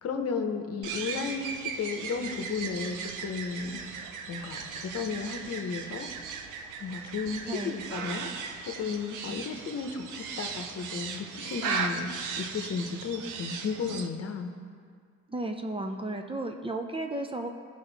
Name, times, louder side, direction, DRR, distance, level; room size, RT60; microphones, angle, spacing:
voice 1, 0.0-3.8 4.3-6.1 6.8-8.3 8.7-12.1 12.4-14.5, left 5 dB, 50° left, 5 dB, 0.9 m, -34 dB
sound 1, 0.8-14.1, right 5 dB, 85° right, 0.7 m, -37 dB
voice 2, 15.3-17.5, right 2 dB, 20° right, 4 dB, 0.6 m, -34 dB
15.0 x 5.2 x 4.0 m, 2.1 s
cardioid pair, 90°, 30 cm